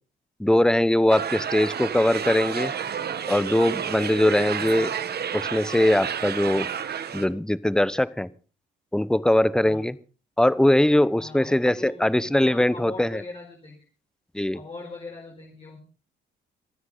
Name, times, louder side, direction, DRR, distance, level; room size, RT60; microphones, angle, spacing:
voice 1, 0.4-2.7 3.3-4.9 5.3-6.7 7.1-8.3 8.9-9.9 10.4-13.1 14.3-14.6, left 1 dB, 5° left, 18 dB, 0.8 m, -21 dB
sound 1, 1.1-7.3, right 8 dB, 55° right, 1.7 m, -30 dB
voice 2, 11.2-13.9 14.5-15.8, left 2 dB, 30° left, 0 dB, 5.1 m, -41 dB
26.5 x 9.5 x 3.9 m, 0.36 s
cardioid pair, 90°, 20 cm